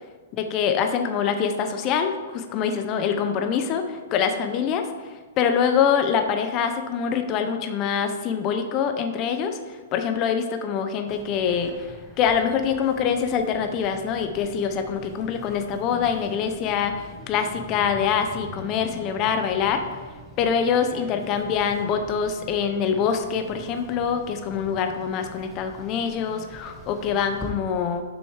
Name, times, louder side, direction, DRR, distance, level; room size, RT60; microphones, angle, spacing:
voice 1, 0.4-11.9 12.2-19.8 20.4-28.0, left 7 dB, 25° left, 6 dB, 0.5 m, -25 dB
sound 1, 11.1-27.5, equal, 5° left, 0.9 m, -44 dB
6.3 x 6.2 x 4.7 m, 1.3 s
hypercardioid pair, 170°, 0 cm